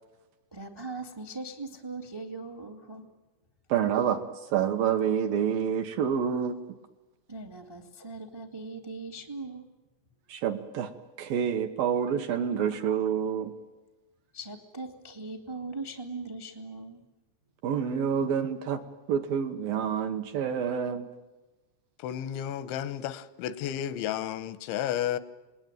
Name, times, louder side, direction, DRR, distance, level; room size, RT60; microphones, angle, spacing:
voice 1, 0.5-3.1 7.3-9.6 14.3-17.0, right 3 dB, 35° right, 0.3 m, -40 dB
voice 2, 3.7-6.6 10.3-10.9 11.2-13.6 17.6-18.8 19.1-21.1, right 8 dB, 65° right, 2.5 m, -28 dB
voice 3, 22.0-25.2, left 10 dB, 90° left, 3.4 m, -32 dB
27.5 x 20.0 x 9.2 m
omnidirectional pair, 5.1 m